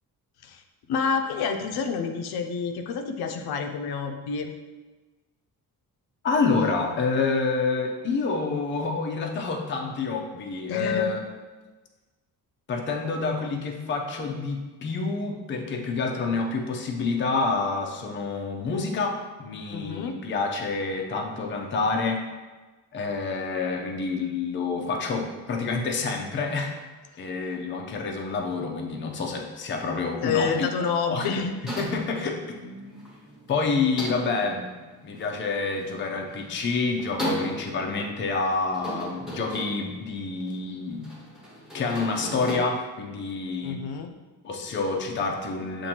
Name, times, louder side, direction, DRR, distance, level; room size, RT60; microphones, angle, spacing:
voice 1, 0.9-4.5 10.7-11.1 19.7-20.2 30.2-31.5 43.6-44.2, left 5 dB, 80° left, 5 dB, 0.5 m, -28 dB
voice 2, 6.2-11.2 12.7-22.2 22.9-26.7 27.2-30.7 31.0-31.3 31.8-32.4 33.5-34.7 35.0-41.1 41.7-43.8 44.4-45.9, left 4 dB, 30° left, 1 dB, 0.5 m, -28 dB
sound 1, 31.7-42.6, equal, ahead, 1.2 m, -37 dB
7.3 x 2.6 x 2.8 m, 1.3 s
cardioid pair, 170°, 37 cm